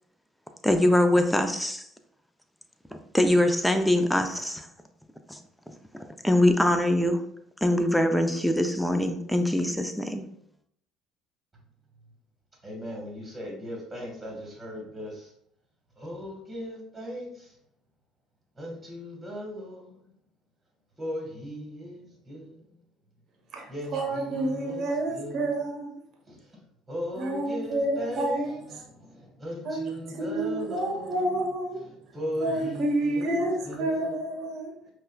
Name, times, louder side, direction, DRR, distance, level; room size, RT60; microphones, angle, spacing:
voice 1, 0.6-1.9 3.1-4.7 5.3-5.4 5.9-7.3 7.6-10.2, left 1 dB, 5° left, 0.5 m, -23 dB
voice 2, 12.6-15.3 16.0-17.5 18.6-20.1 21.0-22.7 23.7-25.6 26.3-26.4 26.9-31.2 32.1-34.2, equal, 15° right, 1.4 m, -37 dB
voice 3, 23.5-25.9 27.1-28.8 29.6-31.8 32.4-34.9, right 1 dB, 55° right, 0.8 m, -29 dB
5.4 x 2.2 x 2.2 m
hypercardioid pair, 70°, 0 cm